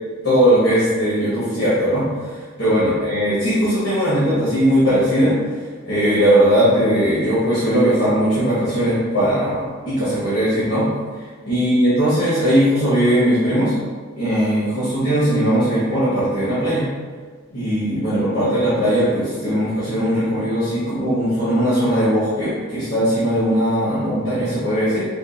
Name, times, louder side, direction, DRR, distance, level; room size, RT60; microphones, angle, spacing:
voice 1, 0.2-5.3 5.8-10.9 11.4-13.8 14.2-16.9 17.5-25.1, equal, 55° left, -12 dB, 1.3 m, -19 dB
4.9 x 2.5 x 2.6 m, 1.5 s
head